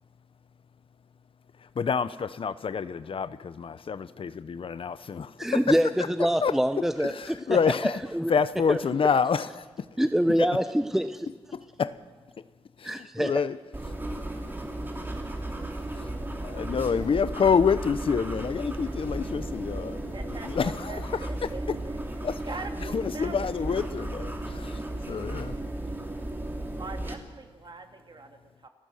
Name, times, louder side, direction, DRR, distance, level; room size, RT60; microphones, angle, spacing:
voice 1, 1.6-5.8 6.4-8.0 8.3-10.0 10.3-10.5 11.5-12.0 12.4-12.5 12.8-13.6 13.9-14.0 15.8-16.1 16.4-21.8 22.2-22.4 22.8-25.6, left 6 dB, 60° left, 15 dB, 0.8 m, -28 dB
voice 2, 5.4-5.9 6.2-7.4 8.1-8.3 8.7-8.8 10.0-11.3 12.8-13.3, equal, 5° right, 9 dB, 0.8 m, -25 dB
sound 1, 13.7-27.1, right 1 dB, 20° right, 2.9 m, -35 dB
voice 3, 20.1-22.0 22.4-23.9 25.0-25.3 26.3-26.4 26.8-28.7, right 3 dB, 50° right, 5 dB, 2.4 m, -43 dB
29.0 x 15.0 x 6.5 m, 1.4 s
cardioid pair, 80°, 10 cm